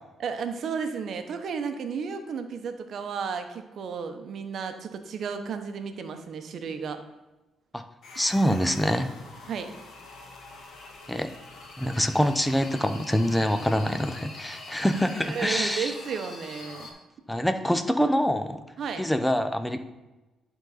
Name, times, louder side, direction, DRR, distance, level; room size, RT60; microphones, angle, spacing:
voice 1, 0.2-7.0 9.5-9.7 15.2-16.9 18.8-19.1, right 6 dB, 60° right, 7 dB, 0.8 m, -33 dB
sound 1, 8.0-16.9, left 3 dB, 65° left, 1.4 m, -44 dB
voice 2, 8.2-9.1 11.1-11.3 11.8-15.9 17.3-18.6 19.0-19.8, equal, 5° left, 8 dB, 0.6 m, -25 dB
11.0 x 4.0 x 4.1 m, 1.1 s
cardioid pair, 90°, 0 cm